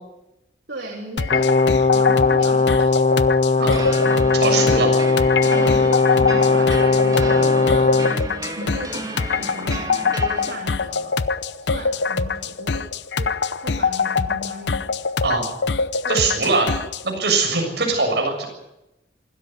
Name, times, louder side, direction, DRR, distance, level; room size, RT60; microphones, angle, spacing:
voice 1, 0.7-1.5 1.9-3.1 3.5-4.7 5.5-6.7 7.0-7.9 8.5-9.9 10.2-11.2 11.6-12.9 13.1-15.0 16.0-16.6, right 1 dB, 85° right, -1 dB, 3.7 m, -35 dB
sound 1, 1.2-17.1, left 5 dB, 75° left, 0.8 m, -24 dB
Brass instrument, 1.3-8.2, left 4 dB, 40° left, 0.7 m, -18 dB
sound 2, 3.7-10.6, right 2 dB, 20° right, 2.2 m, -32 dB
voice 2, 4.4-4.9 15.2-15.5 16.1-16.7 17.0-18.5, right 3 dB, 65° right, 2 dB, 7.2 m, -21 dB
25.5 x 13.5 x 9.6 m, 0.93 s
head